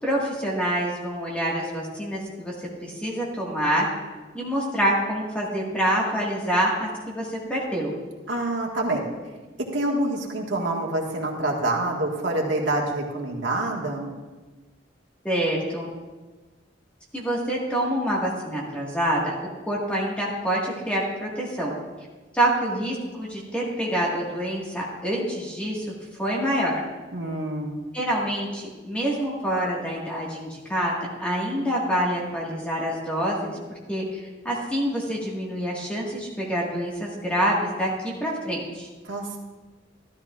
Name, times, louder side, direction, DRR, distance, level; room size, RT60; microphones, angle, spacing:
voice 1, 0.0-2.5 2.8-3.9 4.3-7.9 15.2-15.9 17.1-19.3 19.6-21.7 22.3-26.8 27.9-30.9 31.2-33.6 33.9-34.2 34.4-38.9, equal, 5° left, -4 dB, 1.6 m, -26 dB
voice 2, 8.3-9.0 9.7-14.1 27.1-27.8 39.0-39.4, right 2 dB, 75° right, -1 dB, 1.6 m, -26 dB
13.0 x 12.5 x 2.4 m, 1.3 s
head